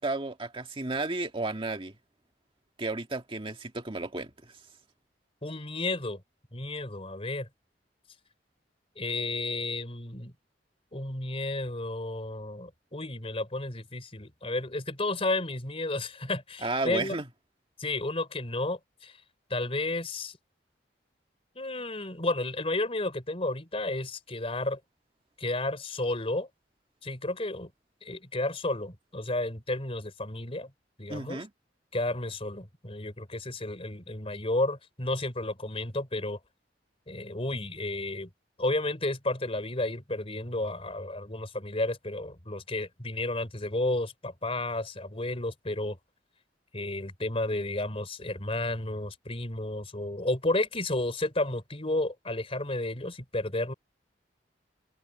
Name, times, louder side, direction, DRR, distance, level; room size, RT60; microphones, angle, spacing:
voice 1, 0.0-1.9 2.8-4.3 16.6-17.3 31.1-31.5, right 2 dB, 30° right, 2.0 m, -32 dB
voice 2, 5.4-6.2 6.5-7.5 9.0-10.3 10.9-17.2 17.8-19.2 19.5-20.4 21.6-24.8 25.4-26.5 27.0-27.7 28.0-30.7 31.0-31.4 31.9-36.4 37.1-38.3 38.6-46.0 46.7-53.7, left 2 dB, 35° left, 3.7 m, -32 dB
head